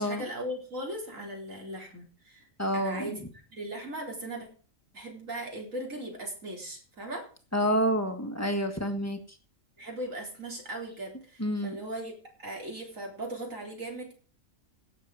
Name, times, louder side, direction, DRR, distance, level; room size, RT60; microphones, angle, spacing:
voice 1, 0.0-2.5 2.7-3.2 3.5-4.5 4.9-7.2 9.8-12.1 12.4-14.1, right 1 dB, 75° right, 0 dB, 4.4 m, -38 dB
voice 2, 2.6-3.1 7.5-9.2 11.4-11.8, equal, 10° left, 7 dB, 1.6 m, -28 dB
17.0 x 7.2 x 4.9 m, 0.39 s
omnidirectional pair, 1.4 m